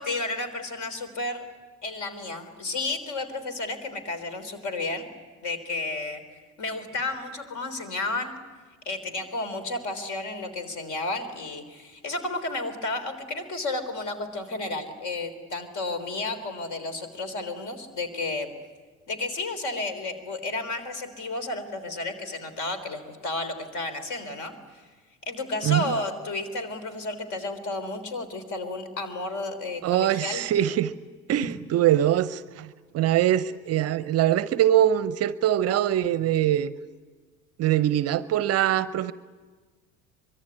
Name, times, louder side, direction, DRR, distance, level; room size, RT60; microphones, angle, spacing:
voice 1, 0.0-1.4 1.8-5.1 5.4-6.2 6.6-8.3 8.9-18.5 19.1-24.8 25.2-30.4, left 2 dB, 45° left, 11 dB, 3.8 m, -32 dB
voice 2, 29.8-30.9 31.3-36.7 37.6-39.1, right 12 dB, 35° right, 17 dB, 0.7 m, -23 dB
24.5 x 22.5 x 9.6 m, 1.4 s
figure-of-eight pair, 65°, 41 cm